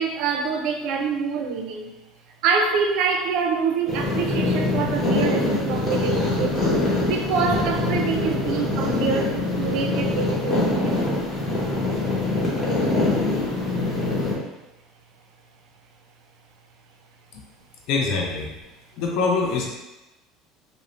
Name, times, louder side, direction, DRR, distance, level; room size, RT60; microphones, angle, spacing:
voice 1, 0.0-1.9 2.4-6.6 7.1-11.0, right 5 dB, 65° right, 4 dB, 0.4 m, -26 dB
sound 1, 3.9-14.3, left 2 dB, 20° left, 1.0 m, -24 dB
voice 2, 17.9-18.5 19.0-19.7, left 4 dB, 60° left, -1 dB, 0.4 m, -24 dB
2.4 x 2.0 x 3.0 m, 0.98 s
cardioid pair, 125°, 0 cm